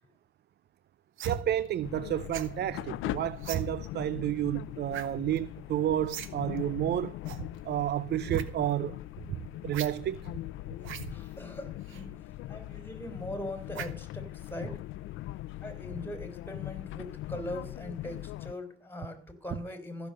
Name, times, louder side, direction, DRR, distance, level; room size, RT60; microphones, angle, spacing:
voice 1, 1.2-7.2 7.6-9.0 9.6-10.2, right 12 dB, 55° right, 0.5 m, -30 dB
sound 1, 1.2-1.4 2.3-2.6 3.4-3.7 4.9-5.1 5.4-5.5 6.1-6.3 6.6-6.7 7.2-7.5 8.2-8.5 9.7-9.9 10.8-11.1 11.9-12.0 13.7-14.0 14.5-14.6, right 9 dB, 90° right, 1.4 m, -36 dB
sound 2, 1.8-18.5, left 15 dB, 90° left, 0.5 m, -41 dB
voice 2, 10.9-14.8 15.6-20.1, left 1 dB, 10° left, 3.8 m, -41 dB
15.0 x 6.8 x 7.8 m
cardioid pair, 90°, 20 cm